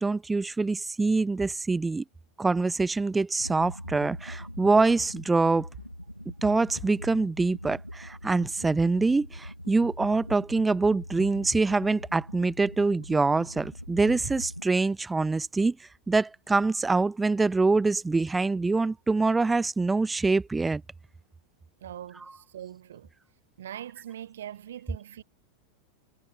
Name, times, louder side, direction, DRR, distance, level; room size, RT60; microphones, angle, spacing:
voice 1, 0.0-2.0 2.4-5.7 6.4-15.8 16.1-20.8, right 3 dB, 10° right, 0.5 m, -25 dB
sound 1, 3.4-14.6, equal, 90° left, 1.2 m, -42 dB
voice 2, 21.8-23.1 23.6-25.2, right 11 dB, 60° right, 0.8 m, -42 dB
figure-of-eight pair, 90°, 0 cm